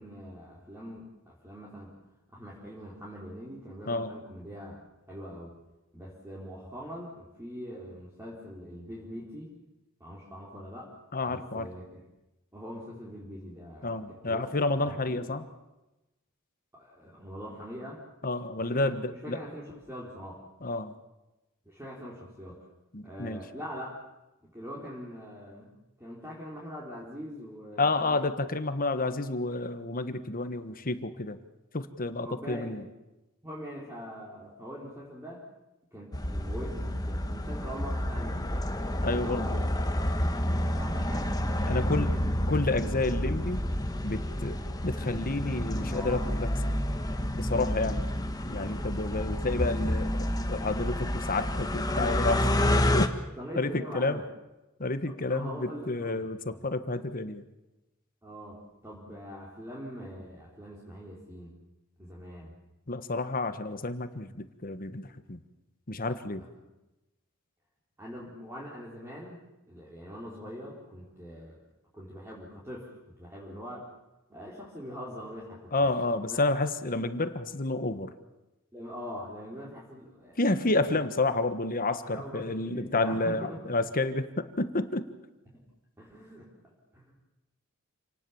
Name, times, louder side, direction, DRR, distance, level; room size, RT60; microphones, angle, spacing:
voice 1, 0.0-1.9 2.3-4.8 5.1-5.5 5.9-9.5 10.0-10.9 11.3-12.1 12.5-14.5 14.8-15.3 16.7-18.0 18.7-20.5 21.6-22.7 23.0-24.0 24.4-25.7 26.0-28.5 32.2-32.9 33.4-35.4 35.9-38.5 39.0-39.7 40.4-42.3 45.9-46.4 47.4-48.0 48.6-49.2 53.3-54.2 55.0-56.7 58.2-61.5 62.0-62.5 66.4-66.5 68.0-69.4 69.7-71.6 71.9-72.9 73.2-73.9 74.3-75.9 76.3-76.4 76.8-77.1 78.7-81.0 82.1-83.7 85.5-85.7 86.0-87.1, equal, 10° right, -5 dB, 4.2 m, -43 dB
voice 2, 11.1-11.7 13.8-15.5 18.2-19.4 20.6-20.9 22.9-23.4 27.8-31.4 31.7-32.8 39.0-39.6 41.7-42.2 42.5-43.6 44.0-46.5 47.3-48.1 48.5-52.5 52.9-53.2 53.5-54.2 54.8-57.4 62.9-65.4 65.9-66.4 75.7-78.1 80.4-85.1, left 2 dB, 40° left, 10 dB, 1.4 m, -30 dB
sound 1, 36.1-53.1, left 1 dB, 20° left, 1.4 m, -29 dB
28.0 x 19.0 x 7.2 m, 1.0 s
head